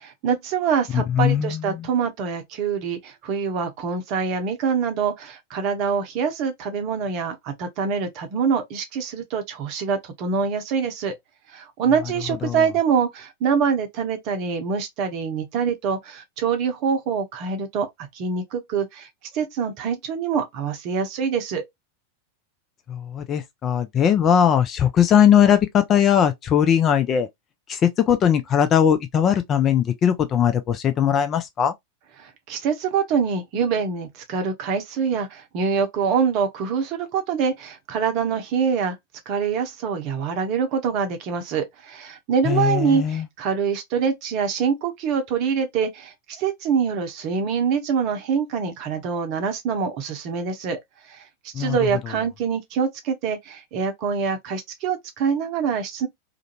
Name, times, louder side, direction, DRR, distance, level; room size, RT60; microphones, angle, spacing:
voice 1, 0.0-11.1 11.5-21.6 32.2-39.0 39.3-50.8 51.1-51.2 51.6-56.1, right 6 dB, 40° right, 0.7 m, -25 dB
voice 2, 0.9-1.8 12.4-12.6 22.9-27.3 27.7-31.7 42.5-43.3 51.5-51.8, left 8 dB, 30° left, 0.4 m, -19 dB
2.5 x 2.1 x 2.8 m
figure-of-eight pair, 90°, 0 cm